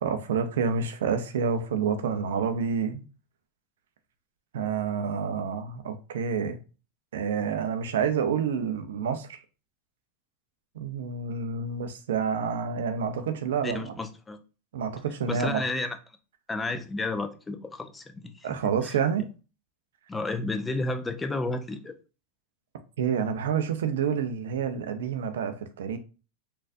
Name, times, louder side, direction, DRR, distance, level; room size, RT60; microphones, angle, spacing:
voice 1, 0.0-3.0 4.5-6.6 7.1-9.4 10.8-14.0 14.7-15.6 18.4-19.2 23.0-26.0, right 6 dB, 85° right, 0.5 m, -28 dB
voice 2, 13.6-14.4 15.3-16.0 16.5-18.5 18.8-19.3 20.1-21.9, left 2 dB, 15° left, 0.4 m, -32 dB
4.2 x 2.5 x 2.5 m
hypercardioid pair, 115°, 0 cm